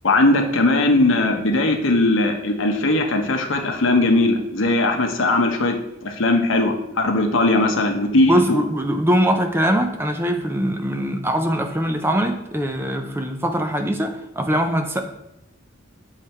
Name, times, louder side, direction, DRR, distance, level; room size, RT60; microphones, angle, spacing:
voice 1, 0.0-5.7 6.0-8.6, left 2 dB, 70° left, 3 dB, 0.9 m, -19 dB
voice 2, 8.3-15.0, equal, 10° right, 5 dB, 0.5 m, -22 dB
7.5 x 3.3 x 4.3 m, 0.87 s
head